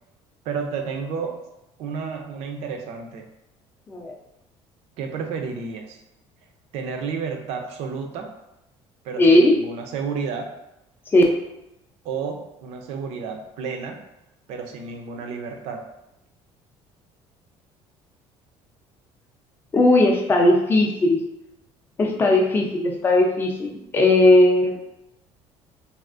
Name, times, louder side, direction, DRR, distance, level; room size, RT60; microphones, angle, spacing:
voice 1, 0.5-1.4 1.8-3.3 5.0-6.0 6.7-8.3 9.0-10.5 12.0-14.0 14.5-15.9, right 5 dB, 70° right, 4 dB, 0.5 m, -31 dB
voice 2, 9.2-9.6 11.1-11.2 19.7-21.2 22.0-24.8, left 1 dB, 20° left, 0 dB, 0.4 m, -17 dB
3.5 x 2.4 x 2.5 m, 0.89 s
cardioid pair, 160°, 11 cm